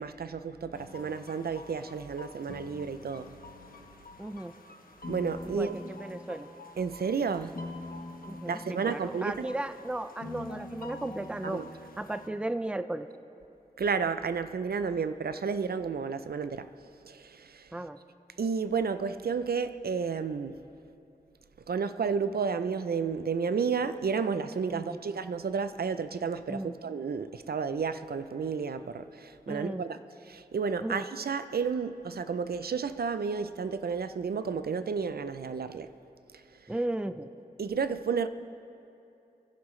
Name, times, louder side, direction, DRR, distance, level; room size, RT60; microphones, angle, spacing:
voice 1, 0.0-3.3 5.1-5.8 6.8-7.6 8.5-9.5 11.4-11.6 13.8-16.7 17.1-17.7 18.4-20.6 21.7-30.0 30.3-35.9 37.6-38.3, right 5 dB, 75° right, 0.4 m, -31 dB
sound 1, 0.7-12.3, left 2 dB, 65° left, 1.1 m, -45 dB
voice 2, 4.2-4.5 5.4-6.5 8.2-11.6 12.0-13.1 17.7-18.0 24.7-25.0 26.5-26.7 29.5-29.8 30.8-31.0 36.7-37.3, right 1 dB, 5° right, 0.4 m, -35 dB
25.0 x 11.0 x 3.2 m
wide cardioid pair, 85°, 16 cm